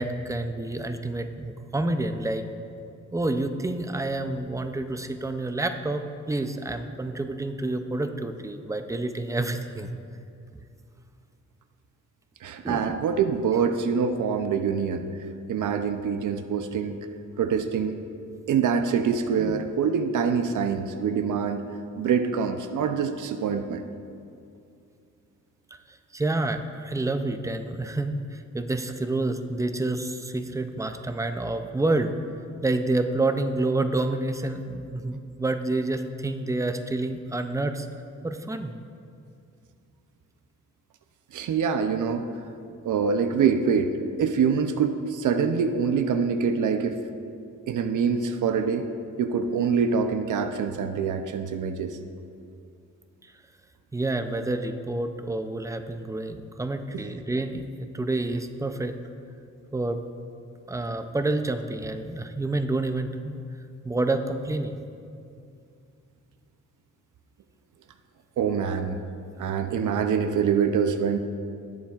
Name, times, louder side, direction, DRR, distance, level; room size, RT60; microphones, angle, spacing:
voice 1, 0.0-2.4 3.1-6.0 6.3-10.0 12.6-12.9 19.4-19.6 26.1-28.2 28.5-32.1 32.6-37.9 38.2-38.7 53.9-58.9 59.7-60.0 60.7-63.4 63.8-64.8, right 2 dB, 10° right, 7 dB, 0.3 m, -28 dB
voice 2, 12.4-15.1 15.5-17.0 17.4-18.0 18.5-21.6 22.0-23.9 41.3-42.3 42.8-43.9 44.2-47.0 47.7-48.9 49.2-52.0 56.9-57.1 68.4-69.0 69.4-71.2, right 6 dB, 80° right, 7 dB, 0.6 m, -25 dB
18.5 x 7.1 x 2.4 m, 2.5 s
wide cardioid pair, 165°, 30 cm